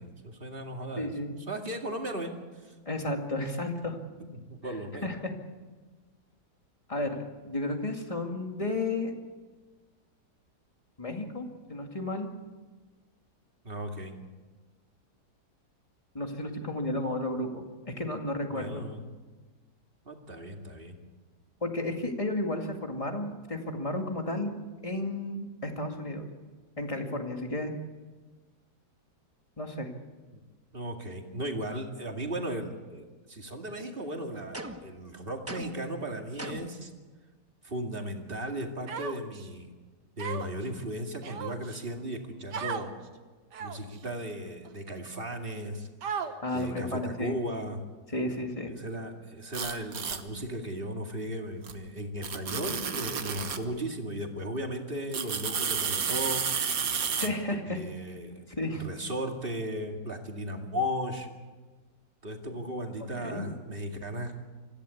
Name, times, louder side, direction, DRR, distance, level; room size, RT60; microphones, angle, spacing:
voice 1, 0.0-1.1 1.5-2.7 4.3-5.1 13.6-14.2 18.5-19.0 20.0-21.0 30.3-30.4 30.7-36.9 37.6-39.7 40.2-42.9 43.6-45.9 46.2-47.8 48.8-56.5 57.2-57.3 57.7-58.5 58.8-61.3 62.2-64.3, equal, 35° right, 3 dB, 2.5 m, -36 dB
voice 2, 1.0-1.4 2.9-4.0 4.6-4.7 5.0-5.3 6.9-9.1 11.0-12.3 16.1-18.8 21.6-24.5 24.8-26.3 26.8-27.7 29.6-29.9 46.4-47.3 48.1-48.7 57.2-57.8 58.5-58.8 63.2-63.5, left 1 dB, 20° left, 3 dB, 2.3 m, -33 dB
sound 1, 34.5-35.0 35.5-35.9 36.4-36.8, right 1 dB, 10° right, 1.0 m, -40 dB
Human voice, 38.9-39.5 40.2-40.6 41.2-41.8 42.5-42.9 43.5-43.9 44.6-44.7 46.0-46.6, right 6 dB, 80° right, 1.9 m, -36 dB
sound 2, 49.5-50.2 51.6-51.7 52.2-53.6 55.1-57.3, right 6 dB, 60° right, 1.7 m, -31 dB
25.5 x 15.5 x 8.4 m, 1.3 s
omnidirectional pair, 1.8 m